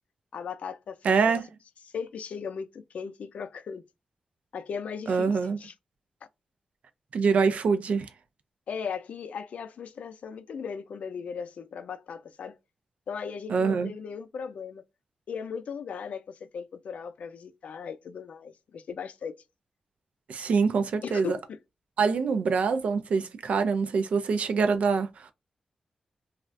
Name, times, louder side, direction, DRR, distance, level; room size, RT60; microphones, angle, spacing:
voice 1, 0.3-1.2 1.9-3.8 4.5-5.7 8.7-12.6 13.1-14.8 15.3-19.3 21.0-21.6, left 6 dB, 80° left, 0.4 m, -37 dB
voice 2, 1.0-1.4 5.1-5.6 7.1-8.1 13.5-13.9 20.3-21.4 22.0-25.3, right 5 dB, 70° right, 0.4 m, -25 dB
3.2 x 2.4 x 2.5 m
wide cardioid pair, 145°, 2 cm